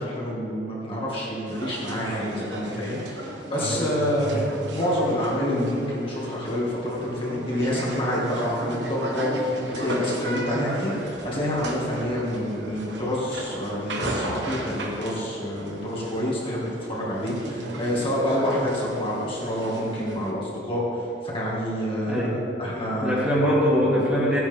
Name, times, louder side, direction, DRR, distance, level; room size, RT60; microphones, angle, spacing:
voice 1, 0.0-22.2 22.6-23.3, equal, 30° left, -6 dB, 2.1 m, -27 dB
sound 1, 1.5-20.3, right 1 dB, 80° right, 1.3 m, -35 dB
voice 2, 22.0-22.4 22.7-22.8 23.0-24.4, equal, 5° right, -7 dB, 2.3 m, -23 dB
14.5 x 9.5 x 3.6 m, 2.8 s
head